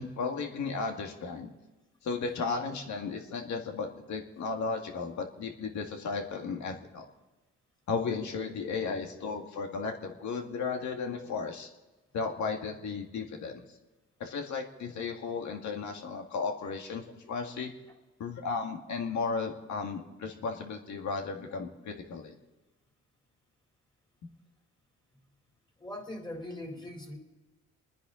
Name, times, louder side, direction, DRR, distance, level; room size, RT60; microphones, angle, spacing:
voice 1, 0.0-1.5 2.0-7.1 7.9-11.7 12.1-13.6 14.2-17.7 18.2-22.3, left 4 dB, 70° left, 3 dB, 2.1 m, -35 dB
voice 2, 25.8-27.2, left 1 dB, 15° left, 1 dB, 3.6 m, -40 dB
26.0 x 10.0 x 3.9 m, 1.1 s
cardioid pair, 90°, 30 cm